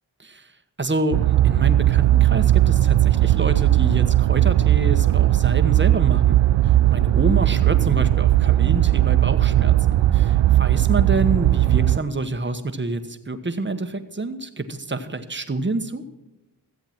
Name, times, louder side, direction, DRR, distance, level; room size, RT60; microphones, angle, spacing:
voice 1, 0.2-0.5 0.8-6.4 6.6-16.0, right 2 dB, 25° right, 8 dB, 1.3 m, -27 dB
sound 1, 1.1-12.0, right 13 dB, 85° right, 0.5 m, -17 dB
15.0 x 8.0 x 6.0 m, 0.96 s
cardioid pair, 55°, 42 cm